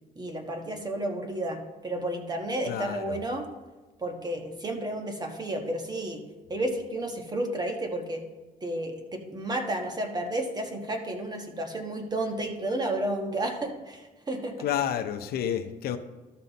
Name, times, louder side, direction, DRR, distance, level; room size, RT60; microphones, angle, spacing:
voice 1, 0.1-3.5 4.0-6.2 6.5-8.2 8.6-14.6, right 1 dB, 25° right, 4 dB, 1.4 m, -32 dB
voice 2, 2.6-3.2 14.6-16.0, left 9 dB, 65° left, 8 dB, 0.7 m, -30 dB
12.5 x 5.6 x 4.1 m, 1.2 s
cardioid pair, 110°, 17 cm